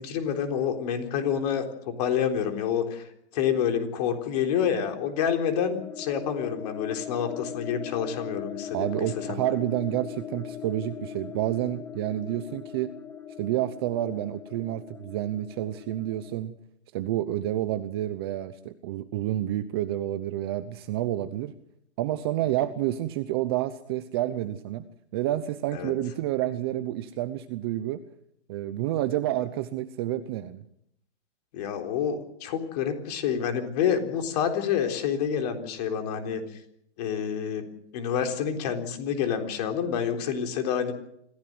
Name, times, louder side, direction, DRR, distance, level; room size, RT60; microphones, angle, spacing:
voice 1, 0.0-8.9 9.3-9.4 25.7-25.9 31.5-36.6 37.0-37.7 37.9-40.9, left 8 dB, 35° left, 5 dB, 3.8 m, -28 dB
sound 1, 4.5-16.4, left 9 dB, 5° left, 1.4 m, -40 dB
voice 2, 8.7-12.9 13.4-16.5 16.9-21.5 22.0-24.8 25.1-28.0 28.5-30.6, right 13 dB, 20° right, 11 dB, 0.8 m, -29 dB
25.5 x 16.0 x 7.8 m, 0.75 s
hypercardioid pair, 160°, 36 cm